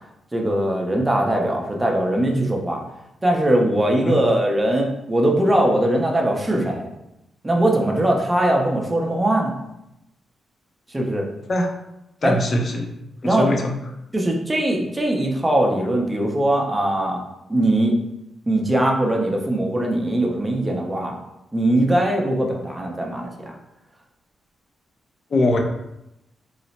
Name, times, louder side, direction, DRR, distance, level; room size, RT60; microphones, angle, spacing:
voice 1, 0.3-2.8 3.2-6.9 7.4-9.5 10.9-11.3 12.2-12.3 13.2-13.5 14.1-17.2 17.5-18.0 18.5-21.1 21.5-23.5, right 1 dB, 15° right, 0 dB, 0.6 m, -21 dB
voice 2, 12.2-12.9 13.2-13.7 25.3-25.6, left 1 dB, 45° left, 3 dB, 0.5 m, -21 dB
3.1 x 2.0 x 4.0 m, 0.88 s
cardioid pair, 105°, 0 cm